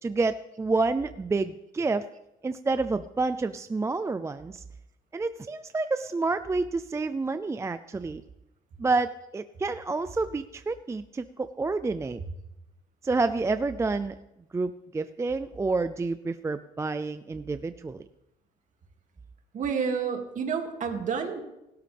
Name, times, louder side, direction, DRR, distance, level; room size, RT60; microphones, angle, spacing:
voice 1, 0.0-2.1 2.4-4.6 5.1-8.2 8.8-12.2 13.0-14.2 14.5-18.1, right 3 dB, 15° right, 11 dB, 0.5 m, -29 dB
voice 2, 19.5-21.4, right 6 dB, 50° right, 4 dB, 2.6 m, -29 dB
28.5 x 12.5 x 3.5 m, 0.92 s
cardioid pair, 110°, 17 cm